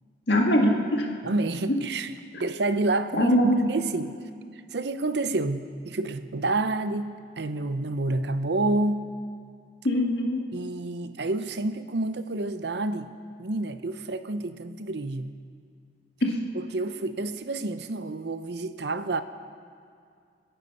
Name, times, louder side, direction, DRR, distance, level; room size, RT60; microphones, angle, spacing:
voice 1, 0.3-1.1 3.1-3.7 9.8-10.4 16.2-16.4, equal, 65° left, 1 dB, 1.8 m, -22 dB
voice 2, 1.2-2.1 2.4-4.1 4.7-9.1 10.5-13.1 13.4-15.3 16.5-19.2, right 2 dB, 60° right, 11 dB, 0.7 m, -29 dB
25.5 x 10.0 x 5.5 m, 2.3 s
head